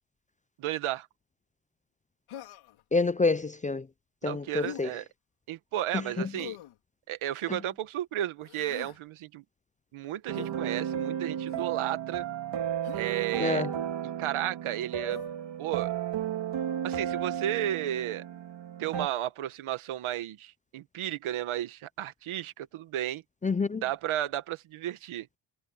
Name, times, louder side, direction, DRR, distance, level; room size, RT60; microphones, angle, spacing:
voice 1, 0.6-1.1 4.2-5.0 5.5-6.6 7.1-9.4 9.9-12.2 12.9-13.6 14.2-15.2 15.6-15.9 16.8-18.2 18.8-23.2 23.8-25.3, right 12 dB, 80° right, 1.5 m, -33 dB
Human voice, 2.3-2.8 4.6-4.9 6.3-6.8 8.4-9.0 10.3-10.6 11.5-11.8 12.8-13.4 15.1-15.3, left 12 dB, 90° left, 4.5 m, -44 dB
voice 2, 2.9-3.9 4.2-4.9 5.9-6.3 7.5-7.6 13.4-13.7 23.4-23.8, left 3 dB, 15° left, 0.4 m, -28 dB
sound 1, 10.3-19.1, right 9 dB, 60° right, 2.5 m, -33 dB
cardioid pair, 85°, 48 cm